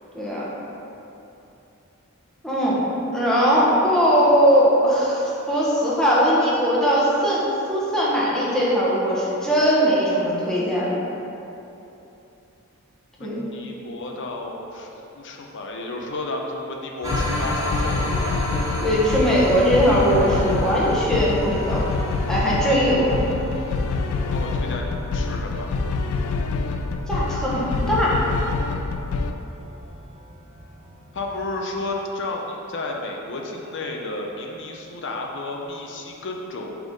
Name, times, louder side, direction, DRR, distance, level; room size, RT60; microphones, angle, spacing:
voice 1, 0.1-0.4 2.4-2.8 3.1-10.9 13.2-13.5 18.8-21.8 22.3-23.1 27.1-28.2, equal, 5° left, -8 dB, 1.2 m, -20 dB
voice 2, 13.2-18.4 24.3-25.7 31.1-36.8, left 2 dB, 60° left, 1 dB, 0.7 m, -32 dB
sound 1, 17.0-29.3, left 3 dB, 90° left, 0.4 m, -26 dB
sound 2, 17.0-31.9, equal, 15° right, 0.9 m, -33 dB
5.8 x 3.7 x 5.2 m, 2.9 s
head